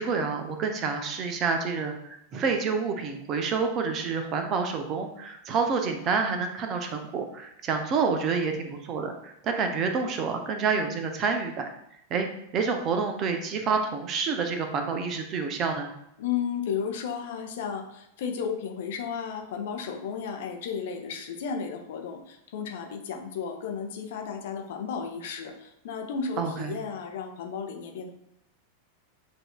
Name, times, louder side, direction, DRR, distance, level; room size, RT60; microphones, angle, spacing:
voice 1, 0.0-11.7 12.1-12.3 12.5-15.9 26.4-26.8, right 5 dB, 35° right, 5 dB, 0.6 m, -28 dB
voice 2, 16.2-28.1, left 6 dB, 55° left, 3 dB, 0.6 m, -33 dB
7.6 x 2.7 x 2.3 m, 0.80 s
figure-of-eight pair, 90°, 0 cm